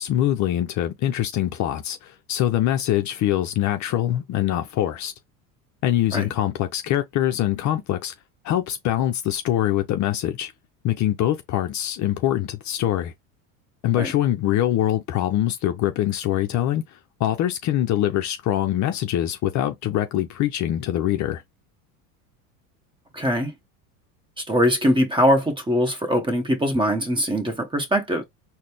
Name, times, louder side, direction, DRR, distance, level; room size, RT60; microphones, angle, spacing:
voice 1, 0.0-5.1 5.8-8.1 8.4-10.5 10.8-13.1 13.8-21.4, left 12 dB, 45° left, 0.6 m, -24 dB
voice 2, 23.1-23.5 24.4-28.2, equal, 10° right, 1.2 m, -22 dB
4.0 x 2.2 x 3.2 m
supercardioid pair, 95°, 42 cm